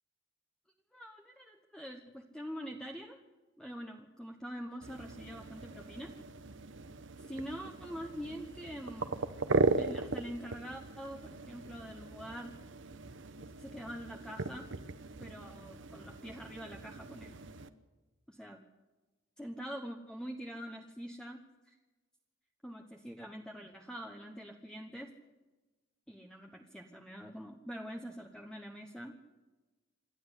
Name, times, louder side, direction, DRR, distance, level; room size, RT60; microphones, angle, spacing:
voice 1, 0.9-3.2 3.6-6.1 7.2-9.2 9.8-12.6 13.6-14.7 15.2-17.4 18.3-18.6 19.4-21.8 22.6-25.1 26.1-29.2, equal, 5° left, 2 dB, 1.2 m, -45 dB
sound 1, 4.8-17.7, right 3 dB, 65° right, 1.1 m, -38 dB
27.0 x 12.0 x 8.2 m, 1.2 s
head